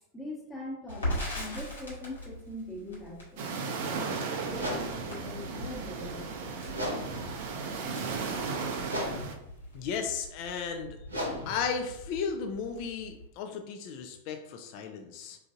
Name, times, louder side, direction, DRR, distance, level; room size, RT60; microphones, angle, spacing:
voice 1, 0.1-3.5 3.9-6.3, left 1 dB, 10° left, -4 dB, 1.0 m, -42 dB
Crackle, 0.9-9.0 9.3-9.4 9.7-10.5, equal, 75° left, 1.3 m, -39 dB
sound 1, 3.4-9.4, right 4 dB, 50° right, 0.4 m, -35 dB
sound 2, 4.5-13.3, equal, 75° right, 0.9 m, -39 dB
voice 2, 9.7-11.0 11.5-15.4, left 6 dB, 45° left, 5 dB, 0.4 m, -35 dB
4.6 x 2.5 x 2.4 m, 0.83 s
figure-of-eight pair, 90°, 0 cm